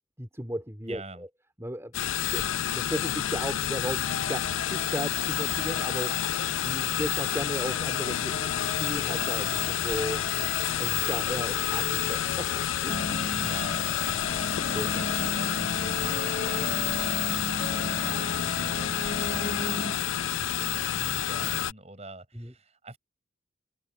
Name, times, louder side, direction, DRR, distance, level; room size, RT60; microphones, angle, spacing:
voice 1, 0.2-1.3 1.6-2.0 2.3-6.2 6.6-10.2 10.8-13.0 14.7-14.9 22.3-22.5, equal, 15° right, 2.7 m, -35 dB
voice 2, 0.9-1.3 13.3-19.0 19.2-23.0, right 2 dB, 35° right, 6.4 m, -45 dB
sound 1, 1.9-21.7, left 11 dB, 85° left, 0.4 m, -29 dB
sound 2, 4.0-20.0, left 2 dB, 40° left, 4.6 m, -36 dB
head